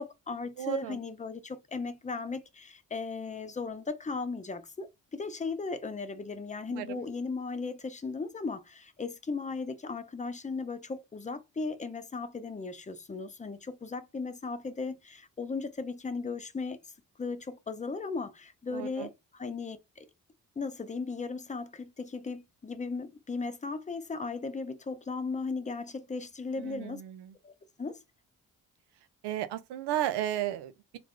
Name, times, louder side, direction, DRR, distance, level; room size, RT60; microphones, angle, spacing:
voice 1, 0.0-16.8 17.2-20.1 20.6-27.0 27.4-27.5 27.8-28.0, left 4 dB, 20° left, 0.6 m, -36 dB
voice 2, 0.6-1.0 6.7-6.9 18.7-19.1 26.6-27.3 29.2-31.0, right 12 dB, 85° right, 0.5 m, -34 dB
3.3 x 2.5 x 3.5 m
supercardioid pair, 50°, 39 cm